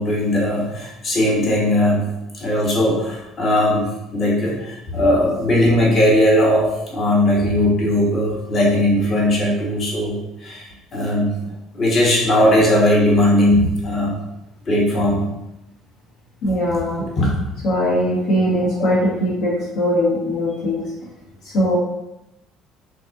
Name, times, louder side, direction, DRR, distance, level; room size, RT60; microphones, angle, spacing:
voice 1, 0.0-2.0 2.3-11.3 11.7-14.2 14.7-15.2 17.0-17.3, left 1 dB, 40° left, -3 dB, 1.1 m, -18 dB
voice 2, 16.4-17.0 17.6-20.8 21.5-21.8, equal, 70° left, -6 dB, 1.0 m, -20 dB
4.0 x 2.8 x 2.5 m, 0.90 s
hypercardioid pair, 65°, 0 cm